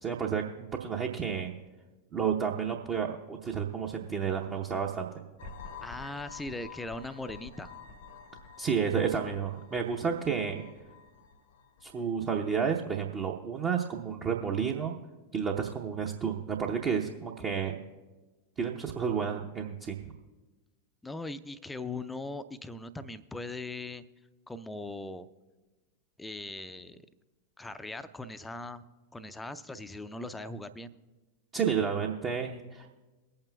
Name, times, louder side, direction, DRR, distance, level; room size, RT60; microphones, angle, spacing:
voice 1, 0.0-1.5 2.1-5.1 8.6-10.6 11.8-15.0 15.3-17.8 18.6-20.1 31.5-32.9, right 7 dB, 30° right, 0 dB, 0.8 m, -31 dB
sound 1, 5.4-12.1, left 6 dB, 55° left, 0.8 m, -49 dB
voice 2, 5.8-7.8 21.0-24.0 24.5-25.3 26.2-27.0 27.6-28.8 29.1-30.9, left 2 dB, 10° left, 12 dB, 0.5 m, -40 dB
23.0 x 8.7 x 2.3 m, 1.2 s
figure-of-eight pair, 90°, 0 cm